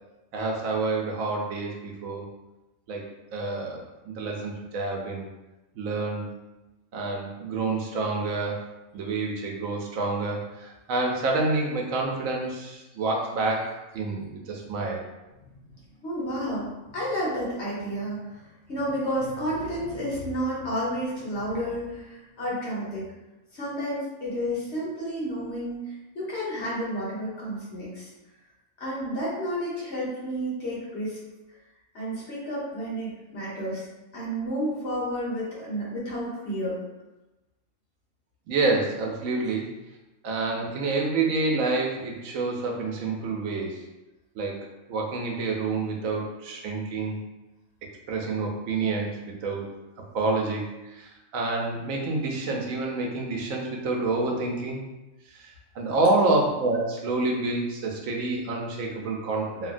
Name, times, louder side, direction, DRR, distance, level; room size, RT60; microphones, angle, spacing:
voice 1, 0.3-2.3 2.9-3.0 3.3-5.2 5.8-6.4 6.9-15.0 38.5-39.7 40.2-43.8 44.4-44.6 44.9-47.2 48.1-49.7 50.1-50.6 50.9-54.8 55.3-59.7, right 3 dB, 80° right, -1 dB, 1.0 m, -28 dB
voice 2, 16.0-18.4 18.7-23.0 23.5-25.8 26.1-28.1 28.8-31.2 31.9-33.8 34.1-36.8, equal, 60° left, -7 dB, 1.3 m, -31 dB
2.8 x 2.7 x 2.5 m, 1.0 s
omnidirectional pair, 1.4 m